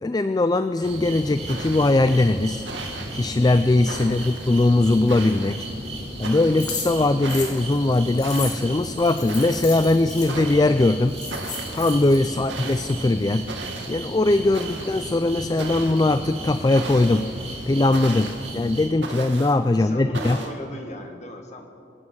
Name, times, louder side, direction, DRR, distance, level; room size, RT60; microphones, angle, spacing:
voice 1, 0.0-2.7 3.1-5.7 6.2-11.2 11.7-13.5 13.9-17.3 17.7-20.4, left 2 dB, 20° left, 11 dB, 0.3 m, -20 dB
sound 1, 0.8-18.9, right 1 dB, 35° right, 4.0 m, -35 dB
sound 2, 0.8-0.9 1.5-2.0 2.6-3.2 3.9-4.5 5.1-5.6 6.2-6.6 7.2-7.7 8.2-8.7 9.3-9.7 10.3-10.8 11.3-11.9 12.5-12.9 13.5-14.0 14.5-15.0 15.6-16.2 16.7-17.3 17.9-18.5 19.0-19.6 20.1-20.5, right 3 dB, 80° right, 2.0 m, -37 dB
sound 3, 6.6-10.3 10.8-10.9 11.1-12.2, left 5 dB, 60° left, 3.9 m, -34 dB
voice 2, 19.8-21.7, left 1 dB, 40° left, 3 dB, 1.8 m, -38 dB
25.5 x 8.7 x 6.3 m, 2.5 s
head